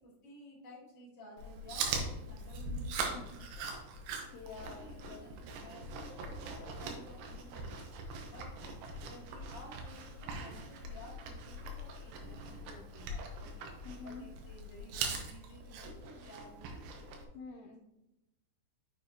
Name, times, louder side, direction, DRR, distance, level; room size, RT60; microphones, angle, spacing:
voice 1, 0.0-3.7 4.6-7.8 8.3-13.7 14.0-17.1, left 1 dB, 25° left, -5 dB, 1.7 m, -54 dB
Chewing mastication, 1.4-17.3, right 3 dB, 80° right, 3.3 m, -42 dB
voice 2, 4.3-5.2 13.8-14.2 17.3-17.8, left 5 dB, 85° left, 2 dB, 2.4 m, -47 dB
7.0 x 6.9 x 2.8 m, 0.90 s
omnidirectional pair, 5.6 m